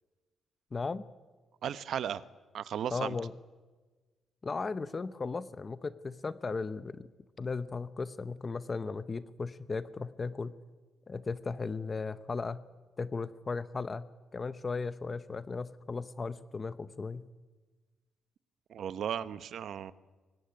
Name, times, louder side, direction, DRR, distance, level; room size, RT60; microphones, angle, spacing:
voice 1, 0.7-1.1 2.9-3.3 4.4-7.1 7.4-10.6 11.1-12.6 13.0-17.3, left 4 dB, 25° left, 15 dB, 0.7 m, -36 dB
voice 2, 1.6-2.2 2.5-3.2 18.7-19.9, right 9 dB, 60° right, 15 dB, 0.9 m, -35 dB
22.0 x 17.5 x 9.7 m, 1.3 s
cardioid pair, 140°, 0 cm